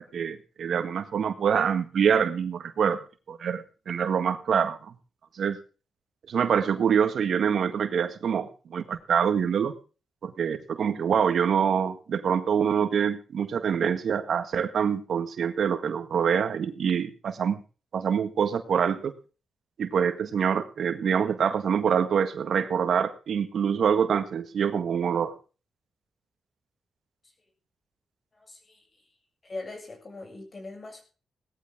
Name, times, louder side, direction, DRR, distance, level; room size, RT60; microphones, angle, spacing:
voice 1, 0.0-4.9 5.4-5.6 6.3-9.8 10.2-17.6 17.9-19.1 19.8-25.3, right 7 dB, 70° right, 10 dB, 1.7 m, -25 dB
voice 2, 28.5-28.8 29.4-31.0, left 2 dB, 40° left, 5 dB, 7.3 m, -40 dB
18.0 x 13.5 x 3.6 m, 0.36 s
cardioid pair, 70°, 0 cm